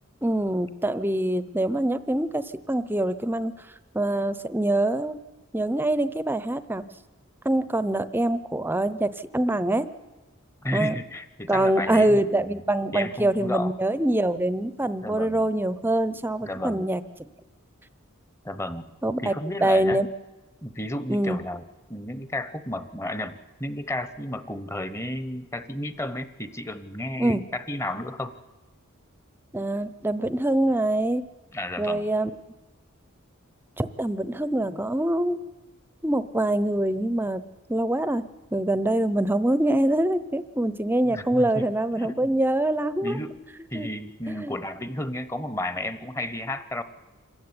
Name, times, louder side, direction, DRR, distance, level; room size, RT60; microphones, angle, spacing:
voice 1, 0.2-3.5 3.9-5.2 5.5-6.8 7.4-9.9 10.7-11.0 11.5-17.0 19.0-19.3 19.6-20.1 21.1-21.4 27.2-27.4 29.5-31.2 31.8-32.3 33.8-35.4 36.0-37.4 37.7-38.2 38.5-43.2 43.7-43.9 44.3-44.6, right 1 dB, 10° right, 14 dB, 0.7 m, -24 dB
voice 2, 10.6-12.6 12.9-13.7 15.0-15.4 16.4-16.8 18.4-18.9 19.2-20.0 20.6-21.6 21.9-28.3 31.5-32.1 41.0-41.7 42.0-42.4 43.0-43.4 43.7-46.8, left 1 dB, 15° left, 12 dB, 1.0 m, -32 dB
26.5 x 15.0 x 9.8 m, 1.2 s
head